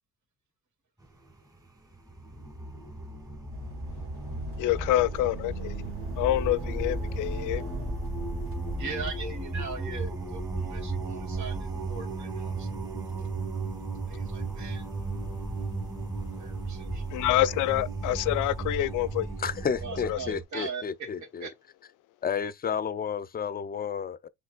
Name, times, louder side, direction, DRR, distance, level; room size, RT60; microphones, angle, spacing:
sound 1, 1.0-1.4 1.9-20.4, right 2 dB, 10° right, 2.3 m, -35 dB
sound 2, 3.5-9.1, right 1 dB, 45° right, 1.6 m, -40 dB
voice 1, 4.6-5.9 6.2-7.7 17.1-19.3 20.1-20.4, left 15 dB, 85° left, 0.4 m, -27 dB
voice 2, 8.8-12.9 14.1-14.8 16.4-17.0 19.8-21.1 21.4-21.5, right 4 dB, 70° right, 2.3 m, -40 dB
voice 3, 19.4-21.5 22.2-24.3, left 7 dB, 30° left, 0.5 m, -31 dB
5.8 x 3.3 x 2.2 m
cardioid pair, 90°, 30 cm